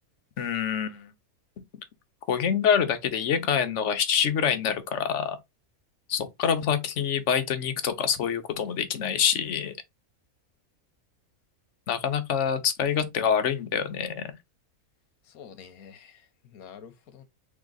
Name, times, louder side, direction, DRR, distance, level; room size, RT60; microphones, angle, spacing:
voice 1, 0.4-1.1 1.6-1.7 2.3-5.4 6.1-9.7 11.9-14.3, left 8 dB, 60° left, 1.0 m, -26 dB
voice 2, 15.2-17.2, left 7 dB, 75° left, 1.2 m, -48 dB
3.7 x 3.3 x 3.7 m
omnidirectional pair, 1.6 m